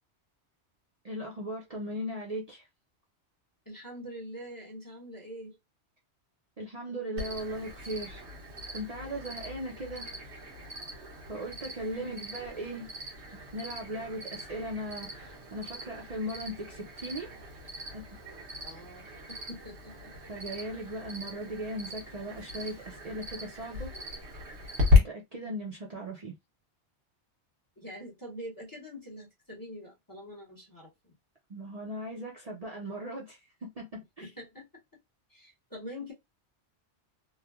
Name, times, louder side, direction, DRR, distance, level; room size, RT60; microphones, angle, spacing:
voice 1, 1.0-2.7 6.6-8.2 8.7-10.1 11.3-12.9 13.5-17.3 17.9-18.0 20.3-23.9 24.9-26.3 31.5-34.3, right 1 dB, 40° right, 0.6 m, -38 dB
voice 2, 3.7-5.6 11.8-12.2 18.6-20.1 27.8-31.1 34.2-34.7 35.3-36.1, equal, 20° left, 0.8 m, -44 dB
Cricket, 7.2-25.0, left 4 dB, 75° right, 1.2 m, -35 dB
3.1 x 2.2 x 2.3 m
omnidirectional pair, 1.2 m